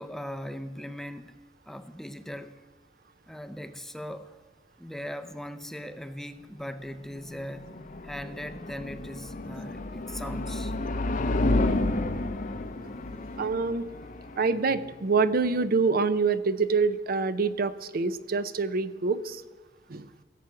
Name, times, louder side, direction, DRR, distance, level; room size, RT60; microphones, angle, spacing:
voice 1, 0.0-1.4 1.7-2.6 3.3-4.3 4.8-7.8 8.0-10.7 12.8-12.9, equal, ahead, 9 dB, 0.5 m, -39 dB
sound 1, 6.9-15.9, left 2 dB, 45° left, 0.6 m, -31 dB
voice 2, 13.4-13.9 14.4-19.4 19.9-20.1, right 4 dB, 55° right, 14 dB, 0.5 m, -26 dB
16.0 x 7.6 x 5.9 m, 1.4 s
head